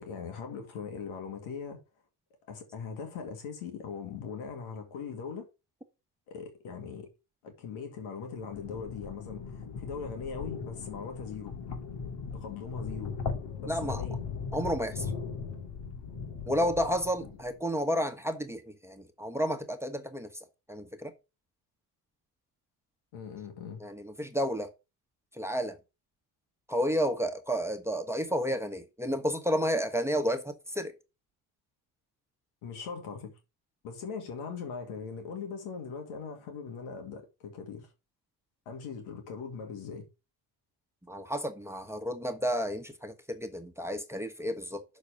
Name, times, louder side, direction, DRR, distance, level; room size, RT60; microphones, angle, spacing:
voice 1, 0.0-1.8 2.5-5.5 6.3-7.1 7.4-11.6 12.3-13.2 13.6-14.2 17.2-17.3 23.1-23.8 32.6-33.4 33.8-37.9 38.7-40.1, left 6 dB, 80° left, 2.1 m, -40 dB
sound 1, 8.3-17.6, left 5 dB, 60° left, 2.4 m, -39 dB
voice 2, 13.7-14.0 14.5-15.1 16.5-21.1 23.8-24.7 25.3-25.8 26.7-30.9 41.1-44.8, equal, 5° right, 1.3 m, -31 dB
6.7 x 4.2 x 6.5 m
supercardioid pair, 70°, 47 cm